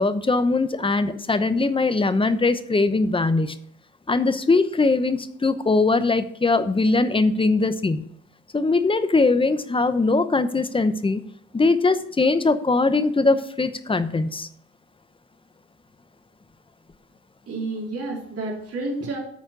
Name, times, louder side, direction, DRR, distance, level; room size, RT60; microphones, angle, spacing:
voice 1, 0.0-3.6 4.1-8.1 8.5-11.2 11.5-14.5, left 3 dB, 15° left, 12 dB, 0.8 m, -21 dB
voice 2, 17.5-19.2, right 2 dB, 50° right, -3 dB, 3.5 m, -30 dB
9.5 x 4.3 x 6.6 m, 0.70 s
cardioid pair, 90°, 30 cm